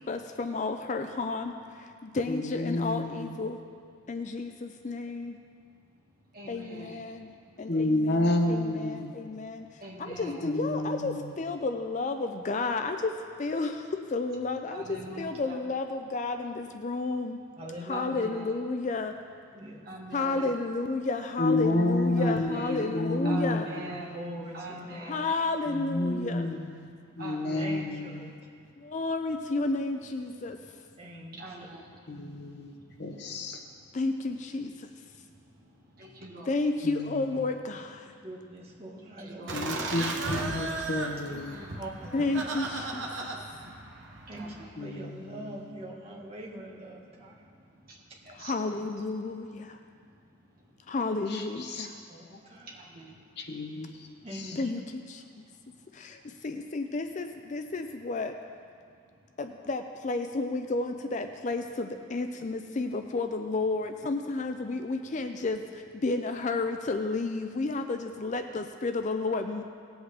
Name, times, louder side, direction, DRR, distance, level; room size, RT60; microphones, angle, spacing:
voice 1, 0.0-3.6 4.1-5.4 6.5-7.3 7.6-17.4 17.8-19.1 20.1-23.7 25.1-26.5 28.8-30.6 33.9-34.9 36.5-38.1 42.1-43.3 48.3-49.8 50.9-52.0 54.6-54.8 55.1-55.2 55.9-58.4 59.4-69.6, left 3 dB, 35° left, 6 dB, 0.4 m, -32 dB
voice 2, 2.3-3.4 7.7-9.1 10.4-11.2 21.4-23.9 25.7-26.9 27.2-28.2 32.1-32.7 33.0-33.6 36.8-37.3 39.5-41.6 44.8-45.6 51.3-51.9 53.4-54.1 54.3-54.5, left 2 dB, 55° left, 3 dB, 0.9 m, -30 dB
voice 3, 5.6-7.7 9.1-10.5 14.7-15.6 17.9-18.5 19.5-20.6 22.2-24.2 24.5-25.3 26.8-27.8 28.3-29.0 30.5-30.6 30.9-34.0 34.8-36.5 38.0-38.5 38.8-39.9 41.4-41.8 43.1-44.8 46.9-48.7 49.6-50.9 52.2-54.3 55.3-56.4 58.8-59.3 64.8-64.9, right 1 dB, 45° right, -3 dB, 1.8 m, -46 dB
voice 4, 17.6-18.2 19.5-19.9 24.1-25.2 27.6-28.4 31.0-31.4 38.2-39.6 41.8-42.4 44.3-44.5 44.8-47.4 52.1-52.7 54.2-54.7, right 1 dB, 30° right, -4 dB, 1.5 m, -42 dB
Laughter, 39.5-44.6, right 3 dB, 65° right, 1.1 m, -35 dB
17.5 x 7.9 x 3.4 m, 2.2 s
head